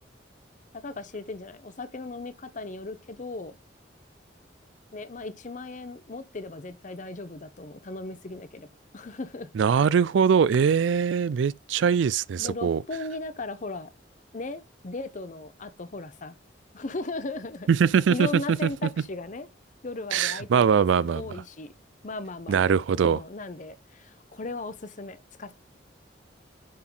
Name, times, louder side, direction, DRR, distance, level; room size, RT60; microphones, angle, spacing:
voice 1, 0.7-3.6 4.9-8.7 8.9-9.5 12.4-13.9 14.3-16.4 16.7-17.7 18.1-19.5 19.8-21.7 22.0-22.7 23.0-25.6, left 3 dB, 40° left, 0.7 m, -37 dB
voice 2, 9.6-12.8 17.7-18.7 20.1-21.2 22.5-23.2, right 7 dB, 75° right, 0.3 m, -22 dB
10.5 x 3.8 x 3.8 m
head